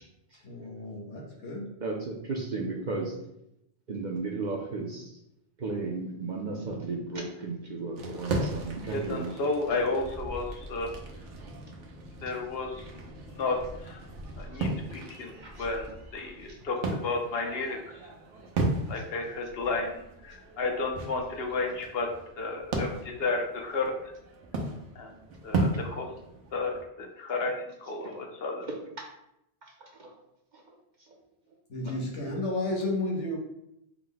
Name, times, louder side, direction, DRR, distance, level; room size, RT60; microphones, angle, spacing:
voice 1, 0.4-1.7 31.7-33.4, left 2 dB, 85° left, 0 dB, 1.2 m, -32 dB
voice 2, 1.8-3.1 3.9-5.1 5.6-9.3 15.4-15.6 28.0-28.2 29.8-30.1, right 3 dB, 50° right, 0 dB, 0.6 m, -34 dB
sound 1, 8.0-26.8, right 2 dB, 85° right, 1.1 m, -36 dB
voice 3, 8.9-10.9 12.2-12.8 13.3-14.0 14.4-15.3 15.6-18.0 18.9-23.9 25.0-25.1 25.4-26.1 26.5-28.7, left 3 dB, 65° left, 3 dB, 0.9 m, -32 dB
4.6 x 2.1 x 3.9 m, 0.81 s
omnidirectional pair, 1.2 m